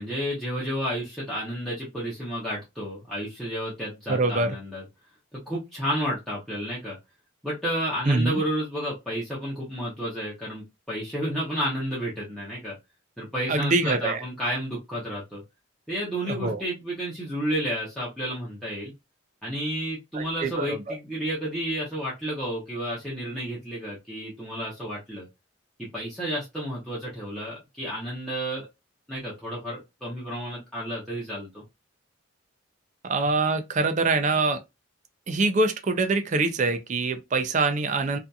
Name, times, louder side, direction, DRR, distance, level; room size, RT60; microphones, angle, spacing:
voice 1, 0.0-4.8 5.3-7.0 7.4-12.7 13.2-15.4 15.9-18.9 19.4-25.3 25.9-28.7 29.1-31.6, equal, ahead, 0.7 m, -31 dB
voice 2, 4.1-4.6 8.1-8.4 13.5-14.2 16.3-16.6 20.1-21.0 33.0-34.6 35.3-38.2, right 3 dB, 35° right, 0.4 m, -24 dB
2.7 x 2.4 x 2.2 m
head